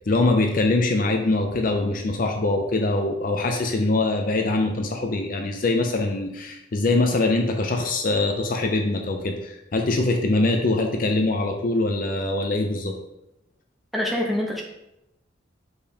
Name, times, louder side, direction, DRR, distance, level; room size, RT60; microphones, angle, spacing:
voice 1, 0.1-13.0, left 2 dB, 45° left, 4 dB, 0.5 m, -23 dB
voice 2, 13.9-14.6, left 1 dB, ahead, -2 dB, 0.9 m, -25 dB
6.7 x 5.1 x 2.9 m, 0.87 s
head